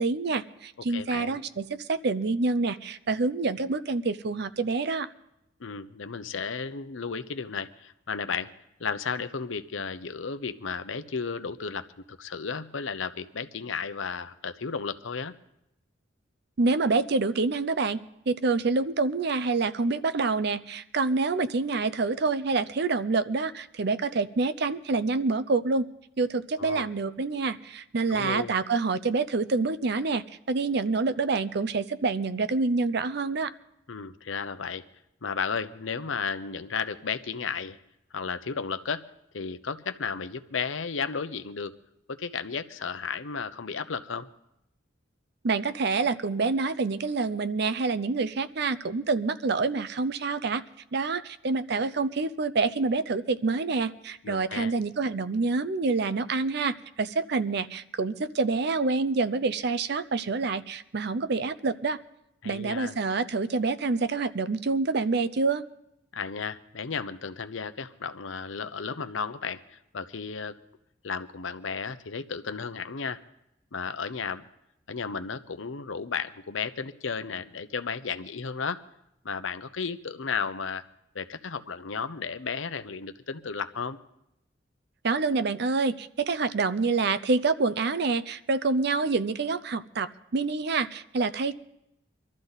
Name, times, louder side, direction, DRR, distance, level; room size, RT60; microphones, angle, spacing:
voice 1, 0.0-5.1 16.6-18.0 18.3-25.9 26.2-33.5 45.4-50.6 50.9-62.0 62.4-65.6 85.0-91.5, right 3 dB, 60° right, 14 dB, 0.6 m, -27 dB
voice 2, 0.9-1.4 5.6-8.5 8.8-15.3 26.6-26.9 28.1-28.5 33.9-34.9 35.2-37.8 38.1-39.0 39.3-41.7 42.1-44.3 54.2-54.7 62.4-63.0 66.1-70.6 71.0-73.2 73.7-74.4 74.9-78.8 79.2-80.8 81.1-84.0, left 5 dB, 90° left, 11 dB, 0.8 m, -33 dB
23.5 x 13.0 x 4.1 m, 0.83 s
head